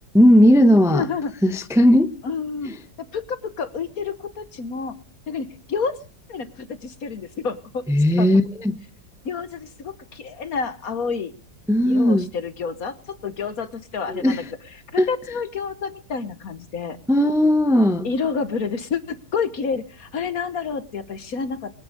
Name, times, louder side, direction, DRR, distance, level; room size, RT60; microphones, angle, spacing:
voice 1, 0.1-1.0 1.4-2.1 7.9-8.7 11.7-12.3 14.1-14.4 15.0-15.1 17.1-18.1, equal, ahead, 0.8 m, -16 dB
voice 2, 0.9-1.3 2.2-2.7 3.1-5.0 5.3-6.0 6.3-7.9 8.2-8.3 9.2-11.3 11.9-14.4 14.9-17.0 18.0-21.7, left 5 dB, 55° left, 1.5 m, -29 dB
22.5 x 9.8 x 6.6 m
omnidirectional pair, 2.0 m